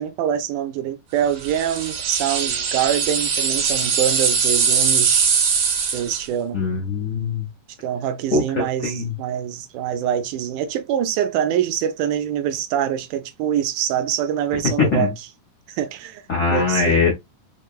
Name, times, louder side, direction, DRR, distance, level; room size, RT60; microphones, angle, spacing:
voice 1, 0.0-5.3 5.9-6.6 7.8-15.1 15.7-16.2 16.5-17.1, right 10 dB, 80° right, 1.9 m, -24 dB
sound 1, 1.4-6.3, right 6 dB, 55° right, 1.8 m, -21 dB
voice 2, 6.5-7.5 8.3-9.1 14.8-15.1 16.3-17.1, left 4 dB, 70° left, 0.9 m, -21 dB
5.8 x 2.1 x 2.4 m
omnidirectional pair, 3.7 m